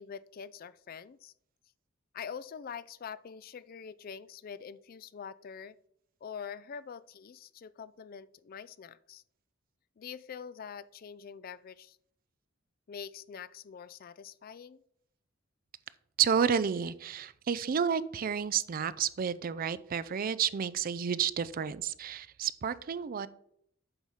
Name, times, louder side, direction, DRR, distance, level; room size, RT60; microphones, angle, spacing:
voice 1, 0.0-1.3 2.1-5.8 6.2-9.2 10.0-12.0 12.9-14.8, left 7 dB, 45° left, 18 dB, 0.4 m, -45 dB
voice 2, 16.2-23.3, right 7 dB, 45° right, 17 dB, 0.4 m, -30 dB
8.0 x 4.8 x 5.6 m, 0.71 s
head